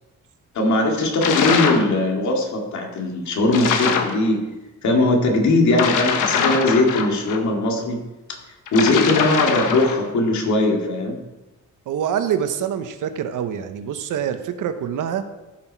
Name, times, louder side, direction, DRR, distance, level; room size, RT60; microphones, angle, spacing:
voice 1, 0.5-4.4 4.8-8.0 8.3-8.4 8.7-11.2, left 2 dB, 65° left, 1 dB, 2.3 m, -20 dB
sound 1, 1.2-1.9 3.5-4.2 5.7-7.4 8.7-10.0, left 6 dB, 90° left, 1.2 m, -22 dB
voice 2, 11.9-15.2, right 8 dB, 85° right, 9 dB, 1.0 m, -25 dB
15.5 x 6.0 x 4.6 m, 1.1 s
cardioid pair, 150°, 31 cm